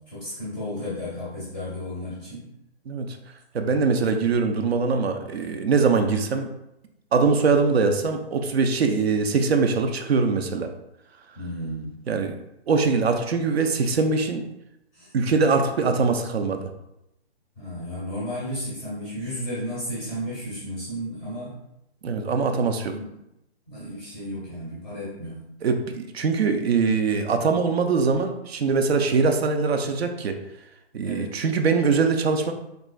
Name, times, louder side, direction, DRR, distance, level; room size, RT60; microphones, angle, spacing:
voice 1, 0.1-2.4 11.4-12.0 14.9-15.1 17.6-21.5 22.9-23.1 23.7-25.4 31.0-31.3, equal, 5° left, -9 dB, 0.5 m, -33 dB
voice 2, 2.9-3.2 3.5-6.5 7.1-10.7 12.1-12.4 12.7-14.4 15.1-16.7 22.0-22.9 25.6-30.4 30.9-32.5, right 4 dB, 70° right, 5 dB, 0.5 m, -22 dB
3.5 x 3.0 x 2.3 m, 0.86 s
hypercardioid pair, 160°, 32 cm